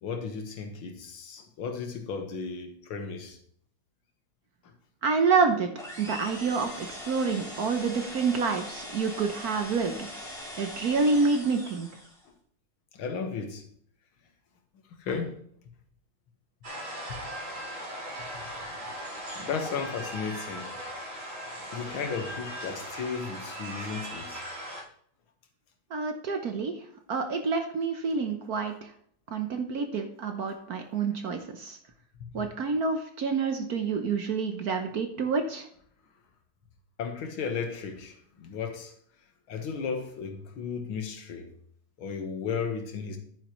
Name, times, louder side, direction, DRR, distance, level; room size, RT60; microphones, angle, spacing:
voice 1, 0.0-3.4 12.9-13.6 15.0-15.4 19.4-20.8 21.7-24.4 37.0-38.9 39.5-41.5 42.0-43.2, left 5 dB, 80° left, 2.1 m, -34 dB
voice 2, 5.0-5.7 6.0-10.1 10.6-11.9 25.9-26.7 27.1-28.9 29.3-31.8 32.3-35.7, right 4 dB, 60° right, 1.1 m, -28 dB
sound 1, 5.8-12.3, left 1 dB, ahead, 2.4 m, -41 dB
sound 2, 16.6-24.8, equal, 35° right, 3.0 m, -38 dB
10.5 x 9.1 x 3.1 m
omnidirectional pair, 2.3 m